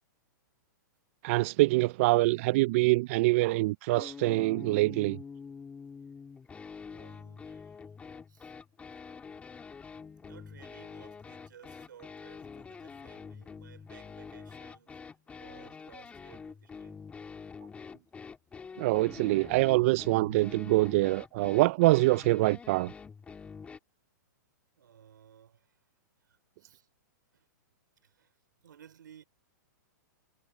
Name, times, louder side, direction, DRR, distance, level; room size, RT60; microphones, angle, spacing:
voice 1, 1.2-5.2 18.8-22.9, right 21 dB, 45° right, 0.4 m, -25 dB
sound 1, 3.9-23.8, left 5 dB, 10° left, 3.6 m, -46 dB
voice 2, 6.9-7.9 8.3-8.6 10.2-17.3 24.8-25.8 26.2-26.9 27.3-27.5 28.0-28.4 28.6-29.2, right 9 dB, 80° right, 5.0 m, -57 dB
hypercardioid pair, 140°, 10 cm